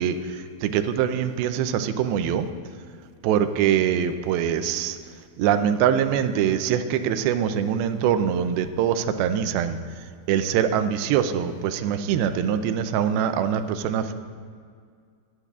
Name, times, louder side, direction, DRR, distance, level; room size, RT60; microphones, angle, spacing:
voice 1, 0.0-2.5 3.2-5.0 5.4-9.8 10.3-14.1, right 9 dB, 85° right, 9 dB, 2.5 m, -23 dB
17.0 x 11.5 x 2.4 m, 2.1 s
omnidirectional pair, 4.3 m